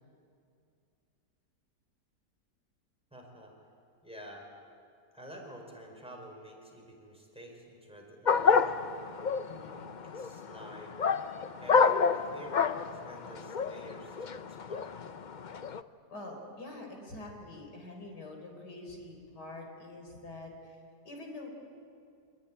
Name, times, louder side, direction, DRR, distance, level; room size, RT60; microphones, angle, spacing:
voice 1, 3.1-3.5 4.0-4.5 5.1-8.9 10.0-11.0 11.6-14.9, right 1 dB, 5° right, 0 dB, 5.2 m, -49 dB
sound 1, 8.3-15.8, left 5 dB, 55° left, 0.5 m, -29 dB
voice 2, 9.5-9.8 16.1-20.8 21.0-21.5, left 2 dB, 85° left, 2 dB, 4.7 m, -45 dB
27.0 x 20.5 x 10.0 m, 2.4 s
omnidirectional pair, 1.7 m